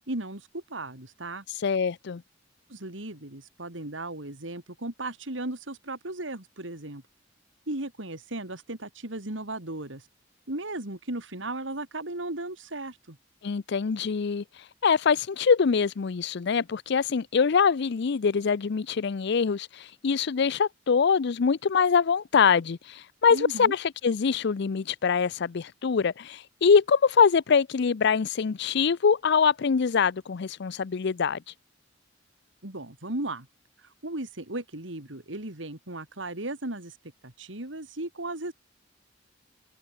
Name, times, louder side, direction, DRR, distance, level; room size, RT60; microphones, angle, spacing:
voice 1, 0.1-1.4 2.7-7.0 7.7-10.1 10.5-13.2 23.3-23.7 32.6-33.5 33.8-37.0 37.2-38.5, right 2 dB, 85° right, 3.5 m, -36 dB
voice 2, 1.6-2.2 13.4-14.4 14.8-31.4, left 6 dB, 65° left, 0.5 m, -24 dB
head